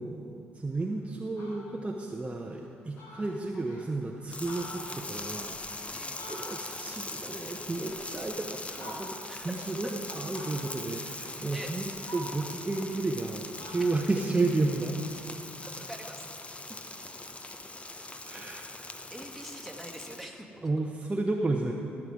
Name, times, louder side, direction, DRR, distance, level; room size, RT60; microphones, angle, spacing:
voice 1, 0.0-6.0 6.3-15.0 18.3-18.6 20.6-21.7, right 2 dB, 25° right, 1 dB, 1.0 m, -32 dB
Fowl, 0.7-0.8 1.2-1.8 2.3-2.4 2.6-2.7 3.0-3.9 4.3-6.9 7.3-8.3 8.7-9.4 10.3-11.0 11.5-13.3 13.6-15.2, left 1 dB, 65° left, 1.9 m, -47 dB
sound 1, 4.3-20.2, left 2 dB, 25° left, 1.0 m, -41 dB
voice 2, 15.6-16.4 17.9-18.6 19.1-20.5, right 1 dB, ahead, 0 dB, 2.1 m, -45 dB
16.0 x 7.4 x 4.9 m, 2.6 s
hypercardioid pair, 45°, 5 cm